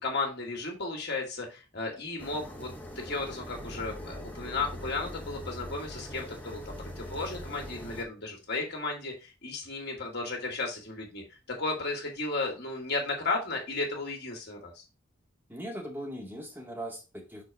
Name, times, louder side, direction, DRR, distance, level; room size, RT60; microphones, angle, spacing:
voice 1, 0.0-2.7 3.0-11.2 11.6-14.8, left 3 dB, 55° left, 0 dB, 2.4 m, -34 dB
sound 1, 2.2-8.0, left 1 dB, 10° left, 1.3 m, -42 dB
voice 2, 15.5-17.4, right 1 dB, 10° right, -1 dB, 2.1 m, -39 dB
6.5 x 4.7 x 4.7 m, 0.30 s
head